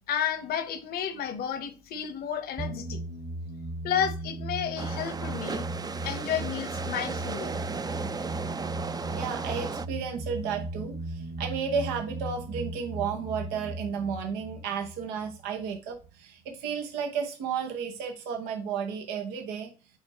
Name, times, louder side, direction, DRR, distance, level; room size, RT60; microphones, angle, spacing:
voice 1, 0.1-3.0 3.8-5.7 6.0-7.6, left 8 dB, 75° left, 1.0 m, -31 dB
sound 1, 2.6-15.8, right 2 dB, 50° right, 1.6 m, -37 dB
sound 2, 4.8-9.9, right 4 dB, 25° right, 0.4 m, -35 dB
voice 2, 9.1-19.7, right 6 dB, 90° right, 1.0 m, -33 dB
8.5 x 4.7 x 3.0 m
supercardioid pair, 60°, 16 cm